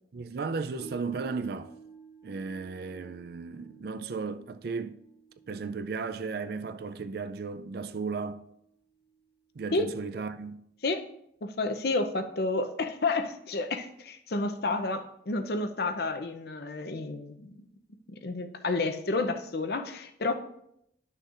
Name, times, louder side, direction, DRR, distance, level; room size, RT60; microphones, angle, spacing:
voice 1, 0.1-1.7 2.2-5.0 5.5-8.4 9.6-10.6, right 4 dB, 55° right, 0.4 m, -35 dB
sound 1, 0.8-11.2 11.6-11.7, right 5 dB, 35° left, 1.6 m, -56 dB
voice 2, 11.4-17.6 18.2-20.3, left 3 dB, 60° left, 0.6 m, -30 dB
11.5 x 6.4 x 2.5 m
head